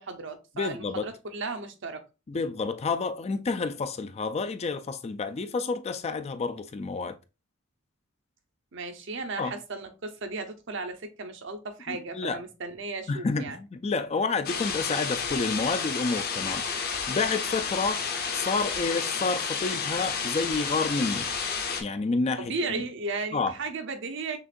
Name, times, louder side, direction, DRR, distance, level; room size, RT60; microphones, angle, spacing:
voice 1, 0.0-2.0 8.7-13.6 22.4-24.4, right 3 dB, 65° right, 0.8 m, -35 dB
voice 2, 0.6-1.1 2.3-7.2 9.4-9.5 11.9-12.4 13.1-16.6 17.1-18.0 18.3-21.3 21.8-22.8 23.3-23.5, left 4 dB, 30° left, 0.3 m, -29 dB
sound 1, 14.4-21.8, left 6 dB, 50° left, 0.8 m, -31 dB
6.2 x 2.5 x 2.5 m
head